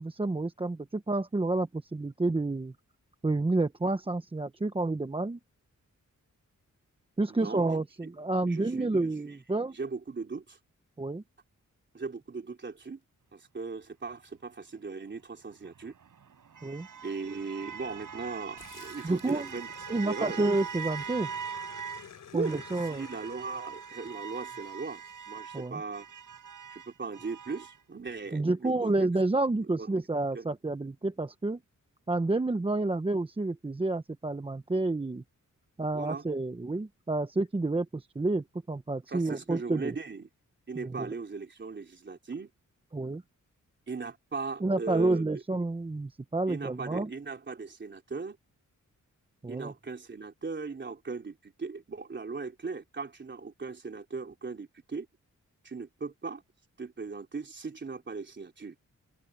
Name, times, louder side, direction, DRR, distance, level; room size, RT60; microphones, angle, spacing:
voice 1, 0.0-2.7 3.2-5.4 7.2-9.8 11.0-11.2 16.6-16.9 19.0-19.5 19.9-21.3 22.3-23.0 25.5-25.8 28.3-31.6 32.1-35.2 35.8-39.9 40.8-41.1 42.9-43.2 44.6-47.1 49.4-49.7, right 2 dB, 15° right, 0.9 m, -29 dB
voice 2, 7.3-7.7 8.5-9.1 9.7-10.6 11.9-13.0 13.3-15.9 17.0-19.7 20.0-20.4 22.3-22.6 22.9-26.1 26.7-28.9 29.8-29.9 30.3-30.5 35.9-36.2 39.1-40.3 40.7-42.5 43.9-45.2 46.5-48.4 49.5-55.1 55.6-56.4 56.8-58.8, right 4 dB, 35° right, 3.5 m, -38 dB
sound 1, 15.5-22.1 22.4-27.8, right 7 dB, 80° right, 7.1 m, -42 dB
Growling, 18.6-25.3, left 8 dB, 80° left, 3.5 m, -52 dB
open air
wide cardioid pair, 140°, 31 cm